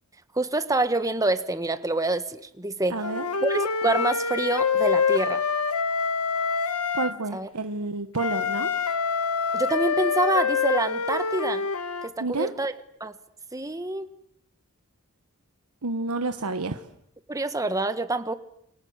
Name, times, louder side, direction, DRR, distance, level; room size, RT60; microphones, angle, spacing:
voice 1, 0.3-3.0 3.4-5.4 7.3-7.5 9.5-11.7 12.0-12.7 13.0-13.1 13.5-14.1 17.3-18.3, right 2 dB, 15° right, 10 dB, 1.4 m, -26 dB
voice 2, 2.9-3.2 6.9-8.7 12.2-12.5 15.8-16.8, right 3 dB, 90° right, 8 dB, 1.2 m, -29 dB
Wind instrument woodwind instrument, 3.0-7.2 8.2-12.1, left 5 dB, 85° left, 1.4 m, -26 dB
29.0 x 24.5 x 8.1 m, 0.75 s
head